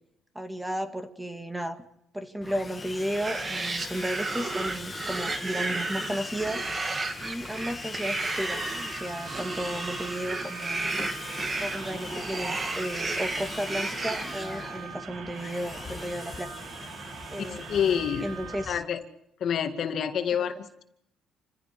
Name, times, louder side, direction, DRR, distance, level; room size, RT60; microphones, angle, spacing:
voice 1, 0.3-1.8 2.1-6.6 7.2-11.0 11.6-16.6 17.3-18.8 20.4-20.5, right 1 dB, 5° right, 8 dB, 2.1 m, -34 dB
Sawing, 2.4-18.9, left 4 dB, 25° left, 1.5 m, -41 dB
sound 1, 3.0-15.0, right 3 dB, 25° right, 2.6 m, -33 dB
sound 2, 8.6-18.7, right 8 dB, 60° right, 2.1 m, -42 dB
voice 2, 17.4-18.3 18.7-19.0 19.4-20.8, left 8 dB, 55° left, 7 dB, 2.2 m, -28 dB
28.5 x 15.5 x 8.2 m, 0.79 s
cardioid pair, 125°, 0 cm